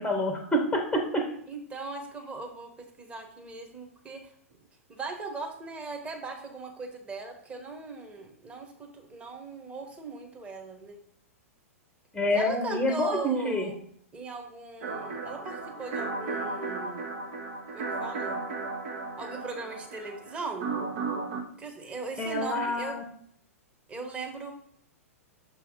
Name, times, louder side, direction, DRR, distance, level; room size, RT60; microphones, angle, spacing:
voice 1, 0.0-1.3 12.1-13.7 22.2-23.0, left 1 dB, 5° left, 2 dB, 1.0 m, -27 dB
voice 2, 1.5-2.7 3.0-4.2 4.9-11.0 12.3-13.8 14.1-17.0 17.7-18.4 19.2-20.7 21.6-23.0 23.9-24.5, right 3 dB, 15° right, 3 dB, 1.4 m, -39 dB
sound 1, 14.8-21.4, right 3 dB, 50° right, 1.2 m, -35 dB
6.8 x 3.4 x 5.1 m, 0.68 s
figure-of-eight pair, 105°, 8 cm